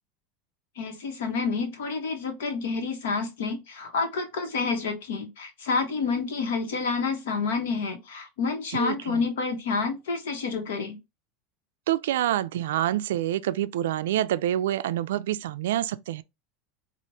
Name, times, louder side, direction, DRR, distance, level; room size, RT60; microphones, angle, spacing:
voice 1, 0.8-11.0, left 4 dB, 90° left, 1.2 m, -29 dB
voice 2, 8.7-9.2 11.9-16.2, right 12 dB, 85° right, 0.3 m, -27 dB
4.6 x 2.4 x 2.8 m
supercardioid pair, 130°, 0 cm